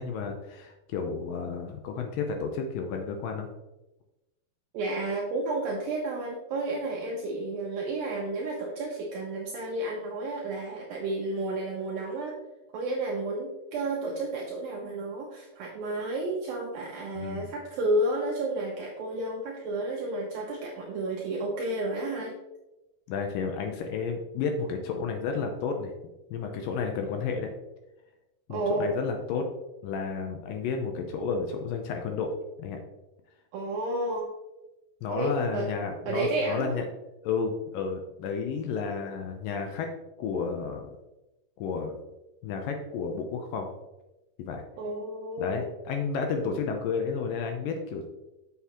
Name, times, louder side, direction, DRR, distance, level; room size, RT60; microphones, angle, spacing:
voice 1, 0.0-3.5 17.2-17.5 23.1-25.9 26.3-27.5 28.5-29.4 29.8-32.3 32.6-32.8 35.0-36.8 37.2-39.9 40.2-40.9 41.6-42.0 42.4-43.7 44.4-44.6 45.4-48.1, left 5 dB, 80° left, 4 dB, 2.0 m, -31 dB
voice 2, 4.7-12.4 12.7-22.3 28.5-28.9 33.5-34.3 35.1-35.7 36.1-36.8 44.8-45.7, right 2 dB, 75° right, -2 dB, 2.3 m, -31 dB
7.0 x 6.8 x 3.0 m, 0.98 s
omnidirectional pair, 4.7 m